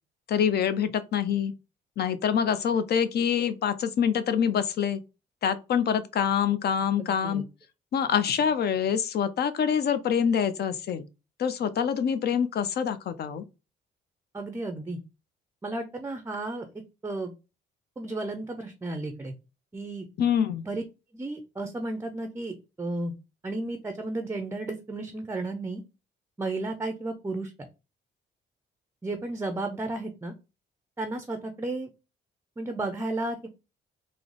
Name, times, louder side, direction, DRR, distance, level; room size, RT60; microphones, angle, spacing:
voice 1, 0.3-1.5 2.0-5.0 5.4-7.4 7.9-11.1 11.4-13.4 20.2-20.6, left 8 dB, 55° left, 0.5 m, -25 dB
voice 2, 7.0-7.4 14.3-15.0 15.6-16.7 17.0-17.3 18.0-19.3 19.7-20.1 20.6-20.8 21.1-23.1 23.4-25.8 26.4-27.5 29.0-30.3 31.0-31.9 32.6-33.5, right 2 dB, 15° right, 0.4 m, -33 dB
3.8 x 2.0 x 3.1 m
cardioid pair, 90°, 20 cm